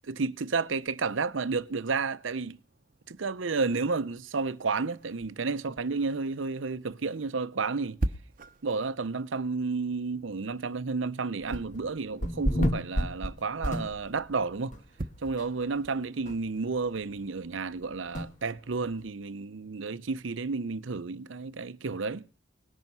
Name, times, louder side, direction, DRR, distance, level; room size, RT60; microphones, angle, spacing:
voice 1, 0.2-2.6 3.1-8.0 8.6-14.8 15.2-22.3, right 4 dB, 80° right, 0.7 m, -31 dB
sound 1, 0.7-17.5, right 1 dB, 45° right, 0.9 m, -44 dB
sound 2, 11.5-11.9 12.2-14.3 14.7-14.8 15.4-15.5 15.7-15.8 16.3-16.4 18.1-18.3, equal, 40° left, 1.5 m, -30 dB
19.0 x 10.5 x 5.6 m
head